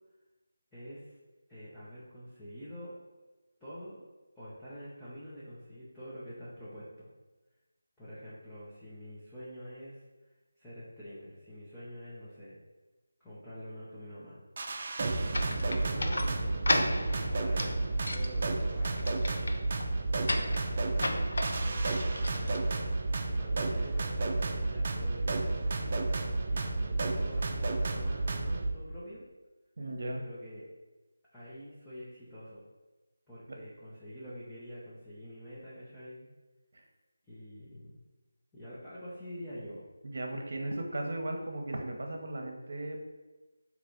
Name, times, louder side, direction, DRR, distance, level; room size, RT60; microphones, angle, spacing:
voice 1, 0.7-1.2 1.5-3.0 3.6-4.0 4.3-7.1 8.0-10.0 10.6-12.6 13.2-14.4 15.5-16.6 17.2-19.1 20.4-21.1 21.6-22.7 23.3-29.2 30.1-30.7 31.3-32.6 33.3-36.3 37.3-38.0 38.5-39.8, equal, 5° left, -13 dB, 0.7 m, -46 dB
sound 1, 14.6-28.7, right 2 dB, 40° right, 0.4 m, -31 dB
sound 2, 15.3-23.2, left 2 dB, 65° left, 0.5 m, -36 dB
voice 2, 29.8-30.2 33.5-33.6 36.7-36.8 40.0-43.0, right 1 dB, 60° right, 2 dB, 0.8 m, -36 dB
3.2 x 2.9 x 3.9 m, 1.2 s
figure-of-eight pair, 165°, 0 cm